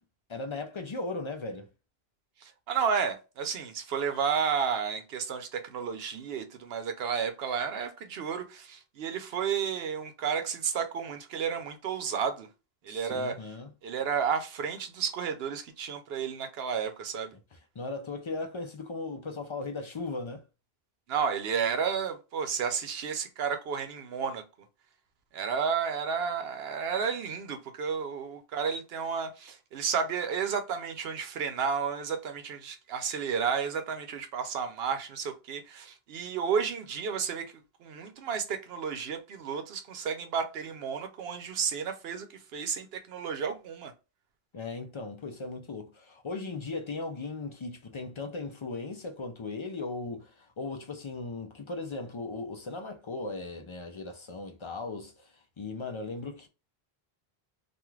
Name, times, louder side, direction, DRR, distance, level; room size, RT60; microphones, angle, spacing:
voice 1, 0.3-1.7 12.9-13.7 17.5-20.4 44.5-56.5, left 3 dB, 45° left, 0.4 m, -37 dB
voice 2, 2.4-12.5 12.8-13.4 13.8-17.3 21.1-24.4 25.3-37.5 37.8-43.9, right 6 dB, 75° right, 0.8 m, -32 dB
2.4 x 2.4 x 3.1 m
omnidirectional pair, 1.1 m